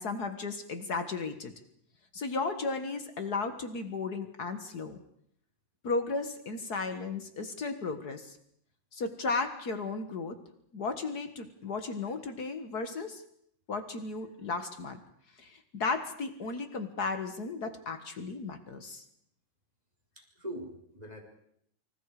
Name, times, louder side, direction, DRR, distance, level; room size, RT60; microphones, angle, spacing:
voice 1, 0.0-1.5 2.1-5.0 5.8-8.4 8.9-10.4 10.7-13.2 13.7-15.0 15.4-19.0, left 4 dB, 65° left, 8 dB, 0.9 m, -35 dB
voice 2, 20.2-21.2, equal, 10° right, 2 dB, 4.0 m, -42 dB
29.0 x 25.5 x 5.0 m, 0.70 s
omnidirectional pair, 4.3 m